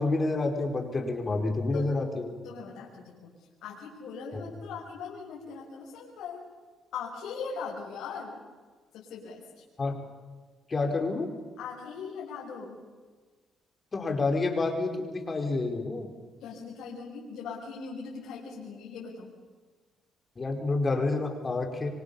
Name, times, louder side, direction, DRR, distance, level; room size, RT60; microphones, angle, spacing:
voice 1, 0.0-2.3 4.3-4.4 9.8-10.0 10.7-11.3 13.9-16.1 20.4-21.9, left 3 dB, 30° left, 3 dB, 5.0 m, -28 dB
voice 2, 2.4-6.5 6.9-8.4 8.9-9.6 11.6-12.8 16.4-19.3, left 5 dB, 85° left, -3 dB, 5.9 m, -40 dB
28.0 x 24.5 x 7.1 m, 1.4 s
cardioid pair, 90°, 0 cm